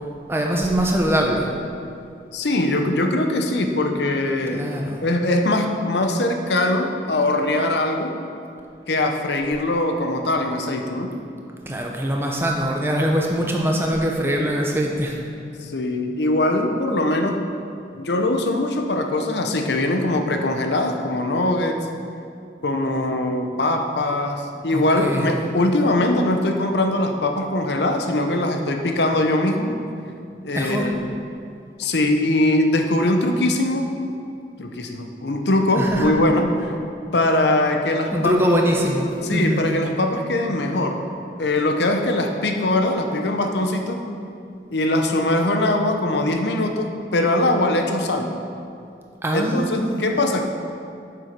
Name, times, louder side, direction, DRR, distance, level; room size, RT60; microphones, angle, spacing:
voice 1, 0.3-1.5 4.5-5.1 11.7-15.2 24.7-25.5 30.5-30.9 35.8-36.1 38.1-39.7 49.2-50.0, equal, 15° right, 0 dB, 0.8 m, -22 dB
voice 2, 2.3-4.7 5.0-8.2 8.9-11.1 15.6-17.5 17.9-21.8 22.6-29.8 30.4-31.0 31.8-33.9 34.6-36.7 37.1-38.4 39.2-41.0 41.4-44.0 44.7-48.3 49.3-50.4, left 1 dB, 75° left, 5 dB, 0.8 m, -21 dB
7.3 x 6.9 x 5.2 m, 2.5 s
head